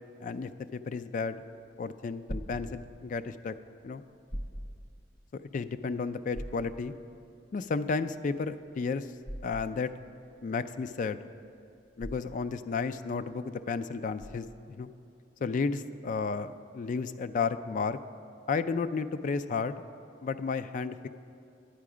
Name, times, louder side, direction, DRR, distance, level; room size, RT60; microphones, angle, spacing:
voice 1, 0.2-1.4 1.8-3.6 3.8-4.0 5.3-6.9 7.5-9.1 9.4-9.9 10.4-11.2 12.0-14.9 15.4-18.0 18.5-19.8 20.2-21.1, left 4 dB, 45° left, 12 dB, 0.3 m, -32 dB
sound 1, 2.3-14.8, equal, 20° left, 0.7 m, -44 dB
10.5 x 8.4 x 4.9 m, 2.4 s
head